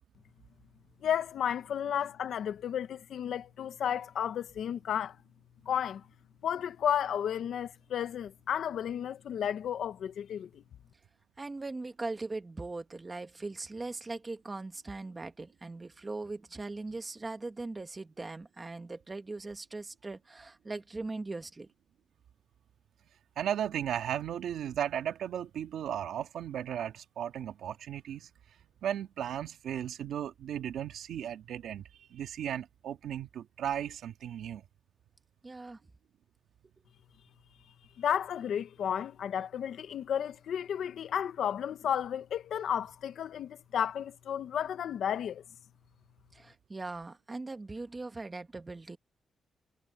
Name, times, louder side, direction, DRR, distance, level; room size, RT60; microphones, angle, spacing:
voice 1, 1.0-5.2 5.6-6.0 6.4-10.6 38.0-45.4, left 9 dB, 70° left, 0.9 m, -33 dB
voice 2, 11.4-21.7 35.4-35.8 46.3-49.0, right 3 dB, 20° right, 1.2 m, -40 dB
voice 3, 23.4-28.3 28.8-34.7, right 10 dB, 90° right, 1.7 m, -35 dB
wide cardioid pair, 160°, 0 cm